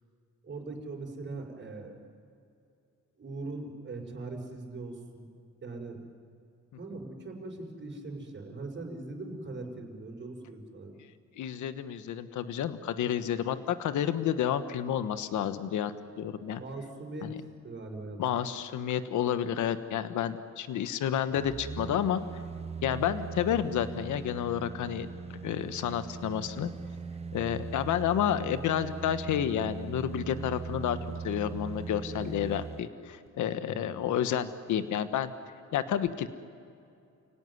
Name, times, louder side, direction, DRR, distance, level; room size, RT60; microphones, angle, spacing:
voice 1, 0.4-2.0 3.2-5.3 5.6-6.0 6.8-11.0 16.6-17.3 17.6-18.2 33.6-34.1, right 3 dB, 40° right, 1 dB, 5.7 m, -41 dB
voice 2, 11.4-16.6 17.2-17.3 18.2-22.2 22.8-25.1 25.4-26.7 27.3-31.0 31.2-35.3 35.7-36.3, left 9 dB, 75° left, 11 dB, 1.3 m, -30 dB
sound 1, 21.3-32.9 33.3-33.4, right 5 dB, 20° right, 0.9 m, -40 dB
29.5 x 17.5 x 9.8 m, 2.5 s
cardioid pair, 90°, 30 cm